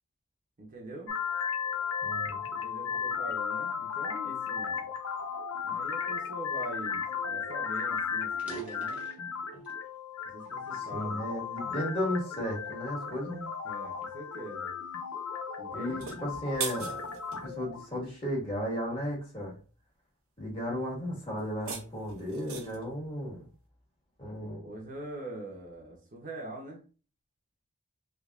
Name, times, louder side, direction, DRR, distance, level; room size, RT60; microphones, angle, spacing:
voice 1, 0.6-1.1 2.6-4.9 5.6-9.0 10.2-11.2 13.6-14.7 15.6-16.0 24.4-26.8, right 1 dB, 40° right, -1 dB, 0.8 m, -43 dB
sound 1, 1.1-17.9, left 6 dB, 80° left, 0.7 m, -35 dB
voice 2, 2.0-2.4 10.7-13.5 15.7-17.1 17.4-19.5 20.4-23.4 24.2-24.6, equal, 25° left, -3 dB, 1.6 m, -34 dB
sound 2, 7.2-7.3 7.6-7.7 8.2-9.9 10.4-11.7 12.3-12.5 13.2-15.2, right 5 dB, 5° right, 0.9 m, -48 dB
sound 3, 15.9-17.4 21.4-22.9, right 6 dB, 85° right, 0.7 m, -40 dB
3.4 x 3.3 x 2.4 m, 0.35 s
head